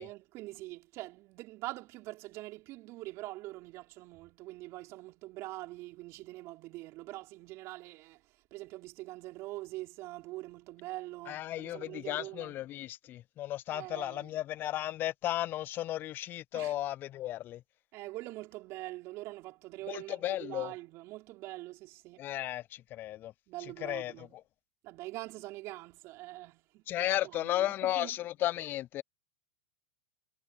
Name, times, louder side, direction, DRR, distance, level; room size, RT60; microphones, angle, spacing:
voice 1, 0.0-12.6 13.7-14.3 16.5-16.7 17.9-22.3 23.5-24.4 24.8-28.2, right 19 dB, 45° right, 5.4 m, -44 dB
voice 2, 11.3-17.6 19.9-20.7 22.2-23.3 23.8-24.3 26.9-29.0, left 14 dB, 35° left, 0.4 m, -34 dB
hypercardioid pair, 110°, 6 cm